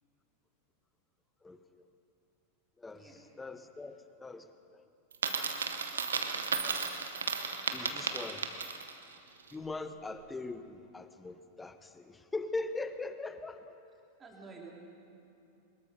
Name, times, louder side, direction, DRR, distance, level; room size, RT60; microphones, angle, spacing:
voice 1, 1.4-1.8 2.8-4.9 7.7-8.5 9.5-13.7, left 3 dB, 10° left, 10 dB, 1.1 m, -41 dB
voice 2, 2.9-3.2 14.2-14.7, right 4 dB, 20° right, -1 dB, 3.8 m, -50 dB
Coin (dropping), 5.1-9.0, right 5 dB, 70° right, 1.3 m, -34 dB
23.5 x 21.0 x 5.5 m, 2.7 s
figure-of-eight pair, 90°, 0 cm